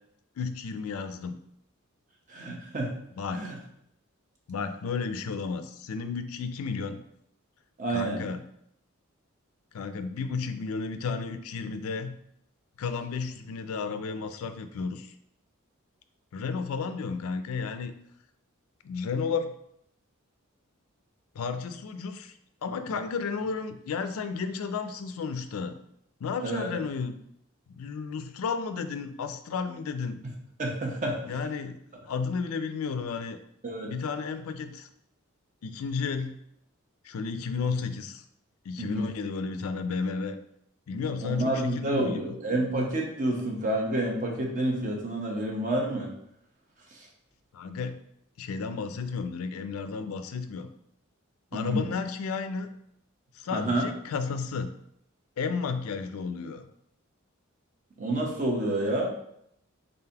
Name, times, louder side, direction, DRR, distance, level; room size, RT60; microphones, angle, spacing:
voice 1, 0.4-1.4 3.2-3.5 4.5-7.0 7.9-8.4 9.7-12.1 12.8-15.1 16.3-17.9 18.8-19.5 21.3-25.7 26.2-27.1 27.7-30.2 31.3-31.8 32.1-33.4 33.8-34.9 35.6-36.4 37.0-38.2 38.6-40.4 40.9-42.4 47.5-48.0 48.4-50.7 51.5-52.7 53.3-54.7 55.4-56.7, left 5 dB, 90° left, 9 dB, 0.4 m, -32 dB
voice 2, 2.3-2.9 3.3-3.6 7.8-8.2 26.4-26.7 30.6-31.2 33.6-33.9 38.8-39.1 41.2-46.1 51.5-51.9 53.5-53.9 58.0-59.1, right 1 dB, 35° right, 0 dB, 0.8 m, -29 dB
3.8 x 3.8 x 2.8 m, 0.72 s
head